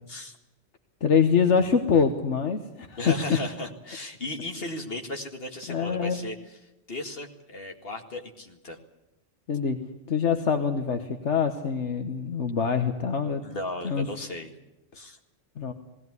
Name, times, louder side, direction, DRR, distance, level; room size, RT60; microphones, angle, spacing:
voice 1, 1.0-3.4 5.7-6.2 9.5-9.8 10.1-13.4 13.8-14.1 15.6-15.7, left 6 dB, 75° left, 6 dB, 1.6 m, -24 dB
voice 2, 3.0-6.4 6.9-8.8 13.4-14.5 14.9-15.2, left 2 dB, 55° left, 3 dB, 2.4 m, -35 dB
19.5 x 17.0 x 9.6 m, 0.94 s
omnidirectional pair, 1.2 m